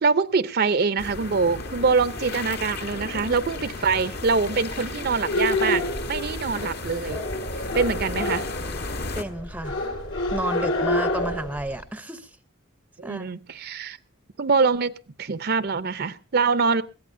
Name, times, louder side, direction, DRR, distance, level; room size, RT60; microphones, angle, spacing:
voice 1, 0.0-5.8 6.1-7.2 7.7-8.4 13.0-14.0 14.4-16.8, right 4 dB, 50° right, 15 dB, 0.6 m, -24 dB
sound 1, 1.0-9.2, left 3 dB, 55° left, 1.4 m, -34 dB
sound 2, 2.9-11.8, left 1 dB, 75° left, 3.1 m, -29 dB
voice 2, 9.1-9.8 10.3-12.3 13.0-13.3, right 1 dB, 10° right, 13 dB, 0.7 m, -31 dB
21.5 x 15.0 x 2.6 m, 0.30 s
head